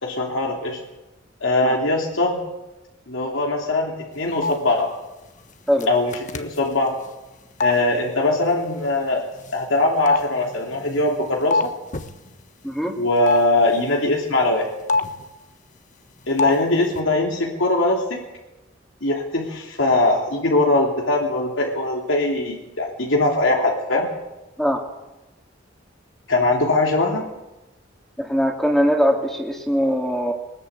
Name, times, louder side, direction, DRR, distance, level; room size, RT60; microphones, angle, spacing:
voice 1, 0.0-0.8 1.4-2.4 3.1-4.9 5.9-7.0 7.6-9.2 9.5-11.6 13.0-14.7 16.3-18.2 19.0-24.1 26.3-27.3, left 2 dB, 85° left, 0 dB, 3.2 m, -21 dB
sound 1, 4.4-4.5 5.8-5.9 6.1-6.6 7.6-7.7 9.4-9.5 10.1-11.7 11.9-12.1 13.3-13.4 14.9-15.2 16.4-16.6 16.8-17.0, left 3 dB, 40° left, 1.4 m, -22 dB
voice 2, 12.6-13.0 24.6-24.8 28.2-30.3, equal, ahead, 1 dB, 2.6 m, -21 dB
21.5 x 20.0 x 8.3 m, 1.0 s
head